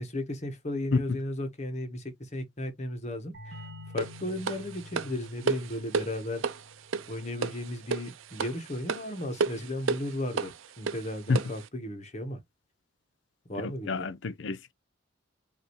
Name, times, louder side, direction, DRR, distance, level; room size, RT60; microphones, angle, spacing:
voice 1, 0.0-6.4 7.1-12.4 13.5-14.1, left 1 dB, 35° left, 1.1 m, -35 dB
sound 1, 3.3-8.8, left 1 dB, 55° right, 2.1 m, -49 dB
sound 2, 4.0-11.7, right 5 dB, 85° right, 0.5 m, -33 dB
voice 2, 13.9-14.7, left 4 dB, 65° left, 0.5 m, -28 dB
5.4 x 2.7 x 3.0 m
head